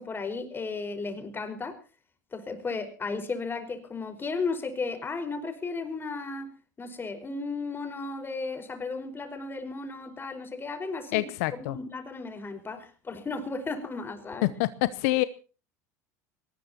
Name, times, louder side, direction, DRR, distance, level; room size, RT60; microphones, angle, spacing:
voice 1, 0.0-1.8 2.3-6.5 6.8-14.5, left 4 dB, 25° left, 8 dB, 5.1 m, -34 dB
voice 2, 11.1-11.8 14.4-15.2, left 18 dB, 70° left, 15 dB, 0.8 m, -26 dB
22.5 x 19.5 x 3.0 m, 0.36 s
hypercardioid pair, 85°, 9 cm